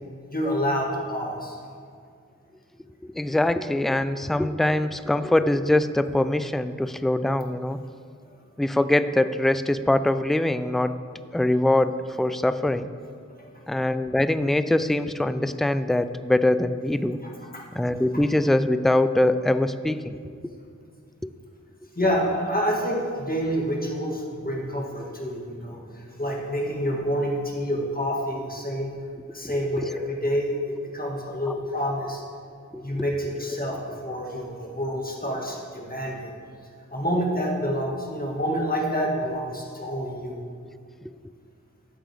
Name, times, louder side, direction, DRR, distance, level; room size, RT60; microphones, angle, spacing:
voice 1, 0.3-1.6 13.4-13.5 17.5-17.6 22.0-28.9 29.3-32.2 32.8-36.4 36.9-40.4, equal, 30° left, -2 dB, 1.9 m, -28 dB
voice 2, 3.0-7.8 8.6-11.0 11.3-12.9 13.7-17.2 17.7-20.2 29.8-29.9 31.5-31.6 32.7-33.0, left 1 dB, ahead, 12 dB, 0.3 m, -23 dB
13.0 x 7.5 x 3.5 m, 2.3 s
wide cardioid pair, 40°, 32 cm